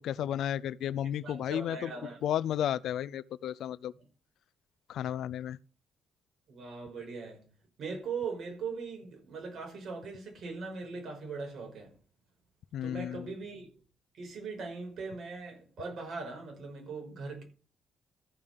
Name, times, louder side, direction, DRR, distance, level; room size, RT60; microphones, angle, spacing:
voice 1, 0.0-1.9 2.2-3.9 4.9-5.6 12.7-13.3, left 10 dB, 75° left, 0.5 m, -33 dB
voice 2, 1.2-2.2 6.5-7.4 7.8-11.9 12.8-13.7 14.2-17.4, right 4 dB, 60° right, 5.5 m, -40 dB
14.0 x 5.4 x 6.8 m
cardioid pair, 90°, 0 cm